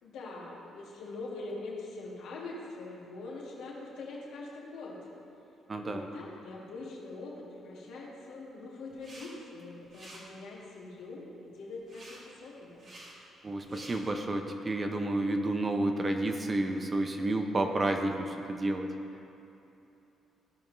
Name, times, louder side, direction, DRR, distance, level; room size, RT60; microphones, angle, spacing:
voice 1, 0.0-5.1 5.8-12.9, left 3 dB, 85° left, -4 dB, 1.7 m, -43 dB
voice 2, 5.7-6.1 13.4-18.9, right 2 dB, 30° right, 5 dB, 0.8 m, -30 dB
sound 1, 8.9-9.3 9.6-10.2 11.9-12.2 12.7-13.1 13.6-14.0, right 1 dB, 55° right, 1.9 m, -50 dB
15.5 x 5.2 x 2.7 m, 2.9 s
cardioid pair, 90°, 0 cm